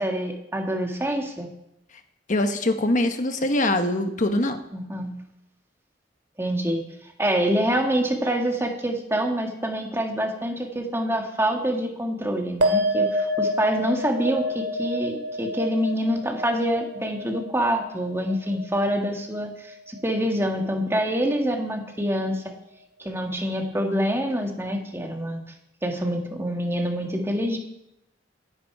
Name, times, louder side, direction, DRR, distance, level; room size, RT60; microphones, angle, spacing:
voice 1, 0.0-1.5 4.7-5.1 6.4-6.8 7.2-22.4 23.0-25.4 25.8-27.6, equal, 15° right, 2 dB, 1.8 m, -26 dB
voice 2, 2.3-4.6, left 1 dB, 45° left, 7 dB, 1.1 m, -23 dB
sound 1, 12.6-19.3 19.6-20.2, equal, 85° right, 2.0 m, -28 dB
18.5 x 11.0 x 4.7 m, 0.82 s
head